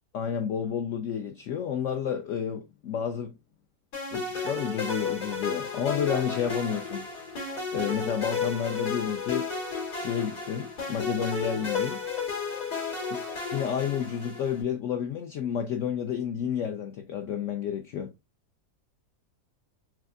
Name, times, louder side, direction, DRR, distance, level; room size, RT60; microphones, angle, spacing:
voice 1, 0.1-3.3 4.1-7.1 7.7-9.5 9.9-12.0 13.5-18.1, left 8 dB, 70° left, 0.7 m, -30 dB
sound 1, 3.9-14.6, left 4 dB, 85° left, 2.8 m, -33 dB
5.8 x 2.5 x 2.4 m
omnidirectional pair, 1.7 m